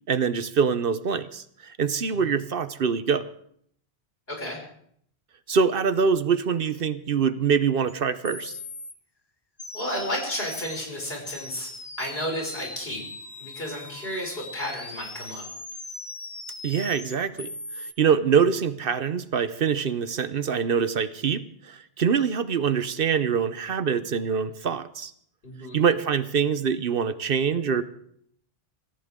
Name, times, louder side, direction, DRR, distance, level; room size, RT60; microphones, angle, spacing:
voice 1, 0.1-3.2 5.5-8.5 16.6-25.1 25.7-27.8, right 6 dB, 65° right, 13 dB, 1.0 m, -24 dB
voice 2, 4.3-4.6 9.7-11.7 12.0-13.0 13.4-15.5 25.4-25.8, equal, 70° left, 0 dB, 5.8 m, -32 dB
sound 1, 7.9-8.0 8.2-8.9 9.6-10.9 11.3-17.9, left 2 dB, 25° left, 1.1 m, -40 dB
26.0 x 15.0 x 3.7 m, 0.66 s
omnidirectional pair, 1.0 m